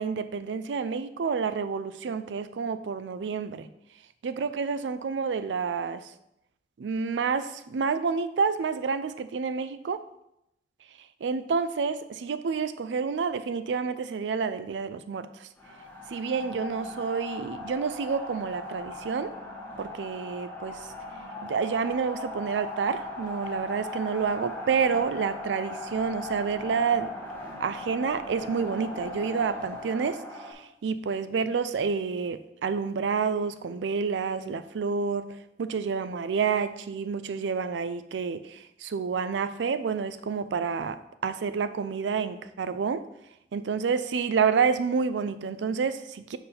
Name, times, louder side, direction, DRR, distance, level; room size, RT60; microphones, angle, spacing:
voice 1, 0.0-3.7 4.2-6.1 6.8-10.0 11.2-15.5 16.1-19.3 19.8-20.8 21.4-27.1 27.6-30.2 30.5-35.3 35.6-43.1 43.5-46.4, right 5 dB, 85° right, 0.4 m, -29 dB
sound 1, 15.6-30.5, left 2 dB, 10° left, 1.2 m, -39 dB
5.1 x 4.6 x 5.7 m
head